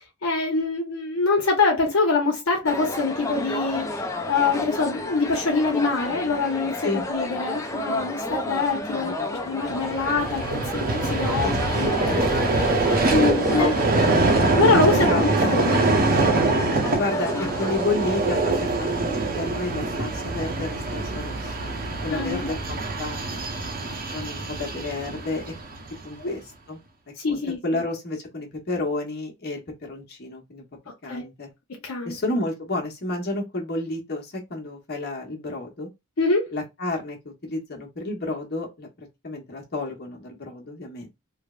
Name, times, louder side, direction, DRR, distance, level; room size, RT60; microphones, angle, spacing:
voice 1, 0.2-4.0 4.3-9.1 9.4-10.4 10.7-10.8 11.1-11.9 13.1-13.7 14.6-15.8 17.3-17.5 22.1-22.5 26.2-26.4 27.2-27.8 31.1-31.2 31.8-32.1 36.2-36.5, left 3 dB, 75° left, 0.7 m, -24 dB
sound 1, 2.7-17.9, left 1 dB, 15° left, 0.3 m, -32 dB
voice 2, 8.9-9.3 11.4-11.6 12.0-14.1 14.9-15.3 16.9-21.8 22.0-23.4 24.1-25.5 26.0-26.4 26.7-26.8 27.3-30.6 31.0-31.5 32.0-35.9 36.5-41.1, left 2 dB, 50° left, 0.9 m, -31 dB
Vehicle, 9.7-26.0, right 2 dB, 40° right, 0.6 m, -24 dB
3.2 x 2.0 x 2.3 m
head